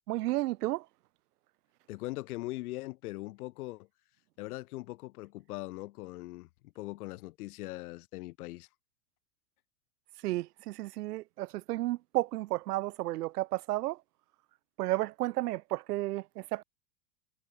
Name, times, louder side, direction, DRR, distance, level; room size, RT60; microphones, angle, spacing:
voice 1, 0.1-0.9 10.2-14.0 14.8-16.6, right 17 dB, 75° right, 1.8 m, -32 dB
voice 2, 1.9-3.9 4.4-8.7, left 19 dB, 65° left, 3.2 m, -41 dB
supercardioid pair, 145°, 47 cm